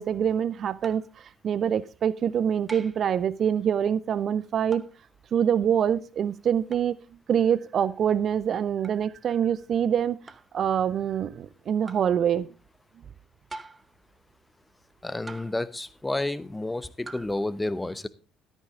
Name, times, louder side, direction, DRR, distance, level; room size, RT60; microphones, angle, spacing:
voice 1, 0.0-4.8 5.3-7.0 7.3-10.2 10.5-12.5, right 8 dB, 45° right, 20 dB, 0.5 m, -25 dB
sound 1, 0.8-1.2 2.7-3.1 4.7-5.0 6.7-6.9 8.8-9.0 10.3-10.5 11.9-12.1 13.5-14.0 15.3-15.7 17.1-17.4, right 3 dB, 20° right, 1.0 m, -44 dB
voice 2, 15.0-18.1, left 2 dB, 10° left, 16 dB, 0.9 m, -30 dB
13.5 x 9.1 x 3.7 m, 0.33 s
figure-of-eight pair, 50°, 0 cm